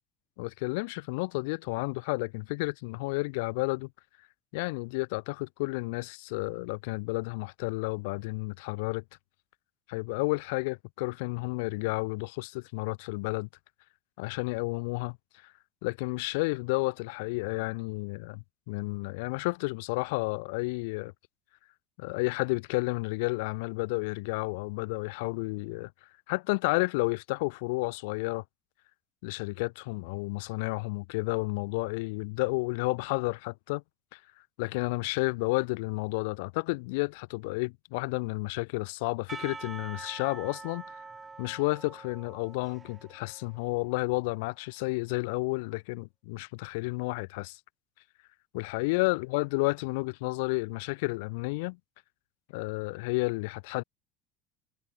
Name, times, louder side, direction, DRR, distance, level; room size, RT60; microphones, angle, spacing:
voice 1, 0.4-3.9 4.5-9.0 9.9-13.5 14.2-15.5 15.8-21.1 22.0-25.9 26.3-28.4 29.2-33.8 34.1-34.2 34.6-41.0 41.4-47.6 48.5-51.8 52.5-53.8, left 26 dB, 85° left, 0.3 m, -31 dB
Percussion / Church bell, 39.3-44.3, right 4 dB, 15° right, 0.7 m, -45 dB
cardioid pair, 140°, 0 cm